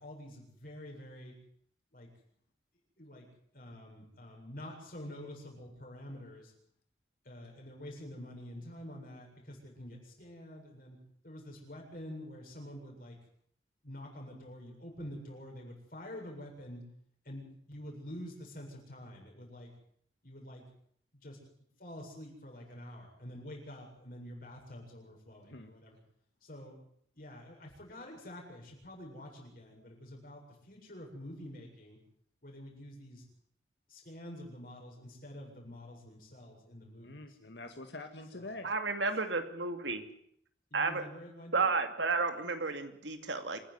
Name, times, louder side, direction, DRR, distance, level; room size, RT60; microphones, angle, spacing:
voice 1, 0.0-1.3 1.9-2.1 3.0-3.2 3.5-6.5 7.2-11.0 11.2-13.2 13.8-16.8 17.2-19.7 20.2-20.6 21.2-21.4 21.8-26.0 26.4-26.8 27.1-32.0 32.4-33.2 33.9-37.1 38.3-38.5 40.7-41.7, left 1 dB, 50° left, 0 dB, 7.6 m, -47 dB
voice 2, 25.4-25.7 37.0-38.7, left 2 dB, 70° left, 6 dB, 1.9 m, -45 dB
voice 3, 38.6-40.0 40.7-41.0 41.5-43.6, right 4 dB, 85° right, 7 dB, 2.5 m, -32 dB
27.0 x 11.0 x 9.6 m, 0.67 s
head